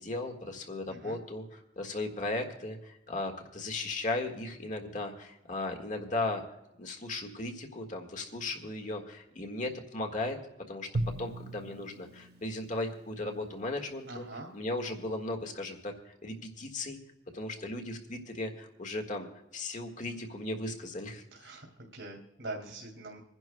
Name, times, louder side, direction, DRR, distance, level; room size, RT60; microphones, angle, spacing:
voice 1, 0.0-6.4 6.8-10.4 10.7-10.9 11.2-14.2 14.5-17.0 17.3-19.3 19.5-21.2, left 2 dB, 40° left, 3 dB, 1.6 m, -36 dB
Drum, 10.9-13.3, right 1 dB, 55° right, 0.6 m, -38 dB
voice 2, 14.1-14.5 21.3-23.2, right 2 dB, 80° right, -2 dB, 2.5 m, -43 dB
27.0 x 10.5 x 2.2 m, 0.89 s
head